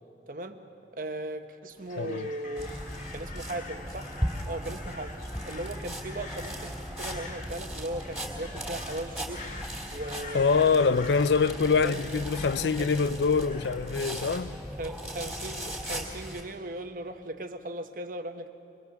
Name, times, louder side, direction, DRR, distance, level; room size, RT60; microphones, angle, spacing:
voice 1, 0.3-0.6 0.9-4.2 4.5-5.2 5.4-9.4 9.9-10.9 11.7-12.9 14.8-18.5, right 1 dB, 50° right, 1.1 m, -38 dB
Crow, 1.8-14.4, left 3 dB, 45° left, 2.0 m, -46 dB
voice 2, 2.0-2.3 10.3-14.6, left 5 dB, 75° left, 0.5 m, -25 dB
sound 1, 2.6-16.4, equal, 5° right, 3.1 m, -37 dB
25.0 x 20.5 x 7.0 m
head